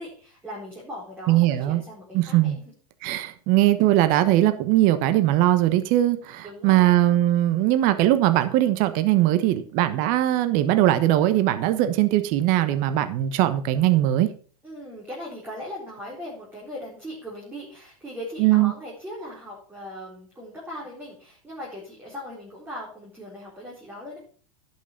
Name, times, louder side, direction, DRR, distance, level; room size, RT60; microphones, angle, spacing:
voice 1, 0.0-2.7 6.4-6.9 14.6-24.2, equal, 10° right, -5 dB, 4.1 m, -39 dB
voice 2, 1.3-1.8 2.1-2.6 3.0-14.3 18.4-18.7, right 14 dB, 45° right, 11 dB, 1.1 m, -20 dB
11.0 x 6.3 x 5.7 m, 0.43 s
hypercardioid pair, 120°, 19 cm